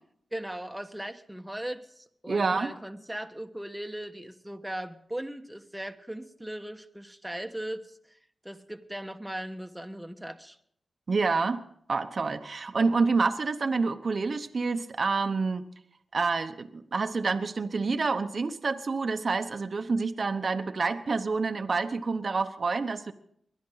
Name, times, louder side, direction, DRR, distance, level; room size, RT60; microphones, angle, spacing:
voice 1, 0.3-8.0 8.4-10.6, right 1 dB, 5° right, 6 dB, 1.4 m, -38 dB
voice 2, 2.3-2.7 11.1-11.6 11.9-15.7 16.1-23.1, right 4 dB, 55° right, 7 dB, 0.9 m, -28 dB
22.0 x 12.0 x 4.0 m, 0.67 s
cardioid pair, 60°, 0 cm